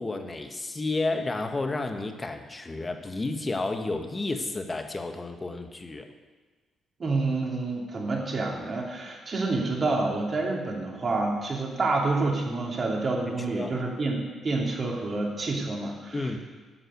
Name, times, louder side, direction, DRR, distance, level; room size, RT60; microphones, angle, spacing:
voice 1, 0.0-6.1 13.3-13.7 16.1-16.4, left 2 dB, 25° left, 6 dB, 1.4 m, -31 dB
voice 2, 7.0-16.4, right 3 dB, 40° right, -1 dB, 3.1 m, -28 dB
9.9 x 7.7 x 9.4 m, 1.3 s
cardioid pair, 90°, 0 cm